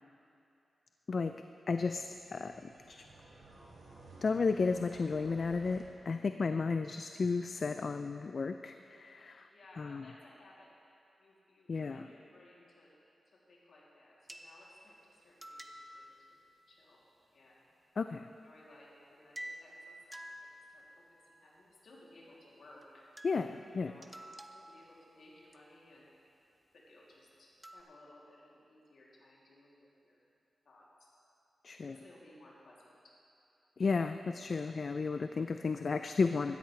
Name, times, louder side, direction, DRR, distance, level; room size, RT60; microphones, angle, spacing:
voice 1, 1.7-3.0 4.2-9.5 9.8-10.1 11.7-12.1 18.0-18.3 23.2-23.9 31.6-32.0 33.8-36.6, left 4 dB, 55° left, 8 dB, 0.3 m, -33 dB
sound 1, 1.7-5.8, right 2 dB, 85° right, 3.4 m, -56 dB
voice 2, 9.5-10.7 11.2-12.9 13.5-16.4 16.7-17.0 17.3-17.6 18.4-19.9 20.3-20.4 20.7-21.0 21.4-23.0 23.7-24.1 24.5-26.1 26.7-30.2 30.7-31.1 31.8-33.1, left 1 dB, 70° left, -5 dB, 2.8 m, -59 dB
sound 2, 14.3-16.6 19.4-19.8 20.1-21.2 22.8-22.9 23.2-23.6 24.0-25.6 27.6-27.8, equal, 10° right, 0.7 m, -50 dB
15.5 x 13.0 x 3.3 m, 2.7 s
cardioid pair, 70°, 0 cm